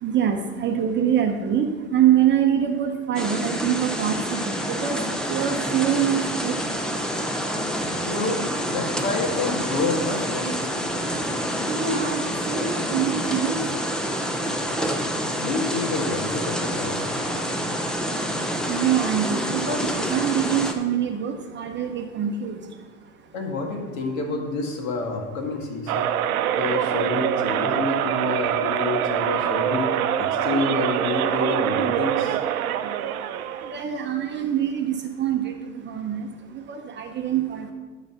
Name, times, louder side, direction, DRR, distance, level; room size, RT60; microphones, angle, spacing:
voice 1, 0.0-5.0 5.3-6.6 11.7-13.6 18.7-22.6 33.7-35.5 35.8-36.3 36.5-37.7, right 9 dB, 25° right, 4 dB, 0.8 m, -24 dB
sound 1, 3.1-20.7, equal, ahead, 0.4 m, -27 dB
voice 2, 8.1-10.6 15.4-17.0 23.3-26.1 26.6-29.9 30.2-32.4, left 3 dB, 60° left, 2 dB, 2.0 m, -28 dB
sound 2, 25.9-33.8, right 10 dB, 70° right, 0.7 m, -24 dB
12.0 x 4.1 x 5.9 m, 1.3 s
hypercardioid pair, 100°, 45 cm